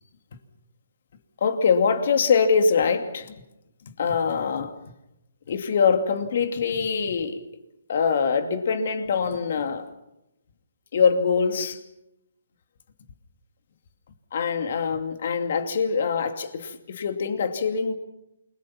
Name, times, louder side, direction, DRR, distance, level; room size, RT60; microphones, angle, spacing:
voice 1, 1.4-3.4 4.0-4.8 5.5-7.4 7.9-9.9 10.9-11.8 14.3-17.9, left 5 dB, 55° left, 8 dB, 2.5 m, -23 dB
28.5 x 22.5 x 5.9 m, 0.88 s
hypercardioid pair, 145°, 0 cm